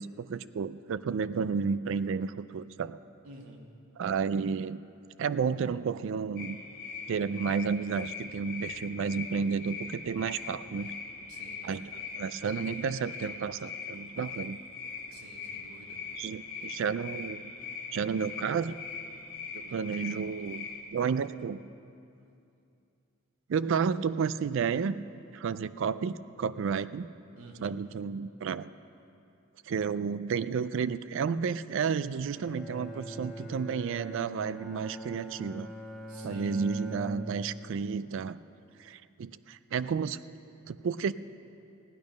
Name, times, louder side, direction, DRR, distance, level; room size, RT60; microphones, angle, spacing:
voice 1, 0.0-3.0 4.0-4.8 5.2-6.6 7.1-10.9 11.6-11.8 12.2-14.6 16.2-17.5 17.9-18.8 19.5-20.7 20.9-21.6 23.5-25.0 25.3-27.1 27.6-28.7 29.7-35.7 36.2-38.4 38.8-40.2 40.7-41.1, right 6 dB, 60° right, 16 dB, 0.3 m, -31 dB
voice 2, 3.2-3.6 11.3-11.8 15.1-16.2 27.4-27.8 36.1-36.6, right 2 dB, 90° right, 0 dB, 1.7 m, -50 dB
sound 1, 6.4-20.8, left 5 dB, 40° left, 1.9 m, -42 dB
Bowed string instrument, 32.3-37.8, right 1 dB, ahead, 1.3 m, -42 dB
16.0 x 10.5 x 5.2 m, 2.6 s
head